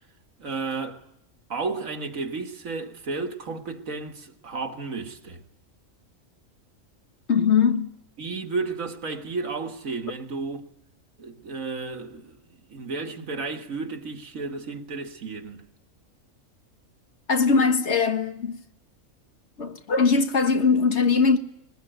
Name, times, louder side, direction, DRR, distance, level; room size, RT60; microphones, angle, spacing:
voice 1, 0.4-1.1 1.5-5.4 8.2-10.7 11.2-12.4 12.7-15.7, right 4 dB, 80° right, 2.1 m, -32 dB
voice 2, 7.3-7.9 17.3-18.6 19.6-21.4, left 5 dB, 55° left, 1.7 m, -21 dB
21.0 x 20.0 x 9.1 m
omnidirectional pair, 1.4 m